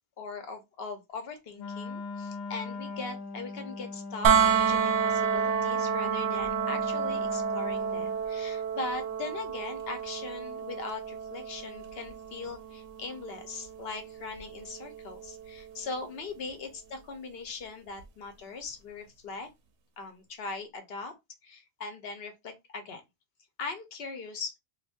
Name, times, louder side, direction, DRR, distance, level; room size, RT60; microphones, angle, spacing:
voice 1, 0.2-19.5 20.0-21.1 21.4-23.0 23.6-24.5, left 4 dB, 65° left, 1.0 m, -40 dB
Wind instrument woodwind instrument, 1.6-8.2, left 3 dB, 80° left, 1.0 m, -39 dB
sound 1, 4.2-16.1 18.0-18.1, right 7 dB, 90° right, 1.0 m, -30 dB
2.6 x 2.5 x 3.5 m
omnidirectional pair, 1.1 m